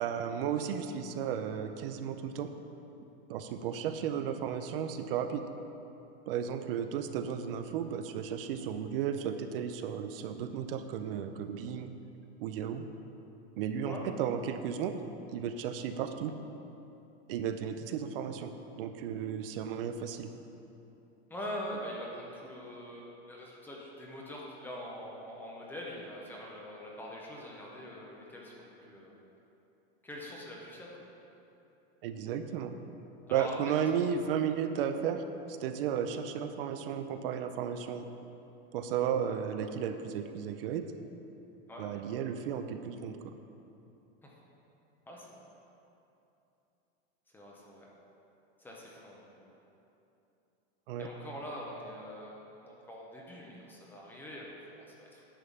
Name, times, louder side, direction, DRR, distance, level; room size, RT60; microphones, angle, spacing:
voice 1, 0.0-2.5 3.3-5.5 6.3-11.9 12.4-12.9 13.6-15.0 15.3-16.3 17.3-20.3 32.0-32.7 33.3-35.2 35.5-38.1 38.7-40.8 41.8-43.3 50.9-51.1, right 8 dB, 60° right, 8 dB, 0.5 m, -34 dB
voice 2, 21.3-29.1 30.0-30.9 33.3-34.2 41.7-41.9 44.2-44.3 45.1-45.4 47.3-47.9 48.6-49.5 51.0-55.2, equal, 5° left, -3 dB, 0.5 m, -44 dB
10.0 x 3.6 x 7.0 m, 2.9 s
supercardioid pair, 170°, 32 cm